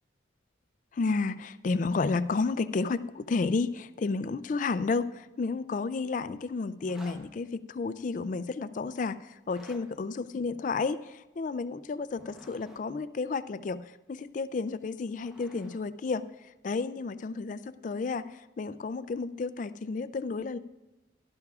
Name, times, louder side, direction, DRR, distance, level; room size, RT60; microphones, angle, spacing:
voice 1, 0.9-16.2 16.6-20.6, left 4 dB, 40° left, 15 dB, 0.3 m, -31 dB
sound 1, 6.8-7.2 9.4-9.8 12.0-12.8 14.7-15.8, equal, 5° right, 1.1 m, -52 dB
16.5 x 11.5 x 2.4 m, 1.0 s
head